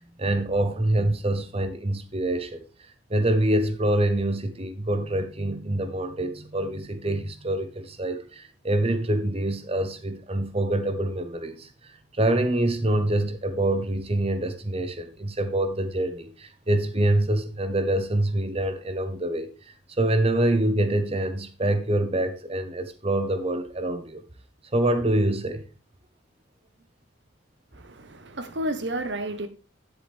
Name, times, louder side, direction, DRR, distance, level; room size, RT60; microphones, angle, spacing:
voice 1, 0.2-2.6 3.1-11.7 12.2-19.5 20.0-24.2 24.7-25.6, right 1 dB, 30° right, 1.0 m, -25 dB
voice 2, 27.7-29.5, right 1 dB, 60° right, 1.1 m, -31 dB
9.7 x 7.9 x 3.5 m
head